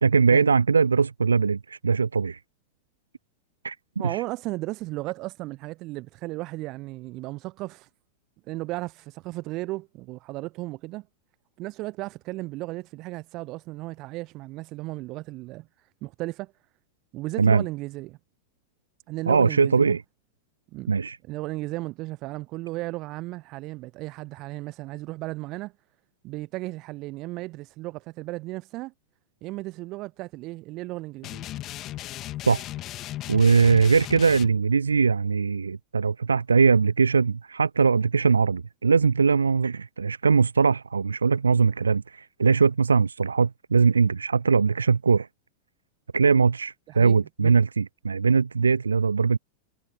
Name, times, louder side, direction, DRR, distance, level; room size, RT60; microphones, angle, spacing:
voice 1, 0.0-2.4 3.6-3.8 4.0-4.2 17.4-17.6 19.3-20.0 20.9-21.2 32.5-32.6 33.3-45.3 46.1-49.4, right 5 dB, 75° right, 0.5 m, -21 dB
voice 2, 4.0-7.9 8.5-11.1 11.6-15.7 16.0-16.5 17.1-18.2 19.1-20.0 20.7-20.9 21.2-25.7 26.2-28.9 29.4-31.5 46.9-47.6, right 20 dB, 40° right, 0.8 m, -35 dB
sound 1, 31.2-34.5, left 14 dB, 35° left, 2.1 m, -36 dB
figure-of-eight pair, 90°, 0 cm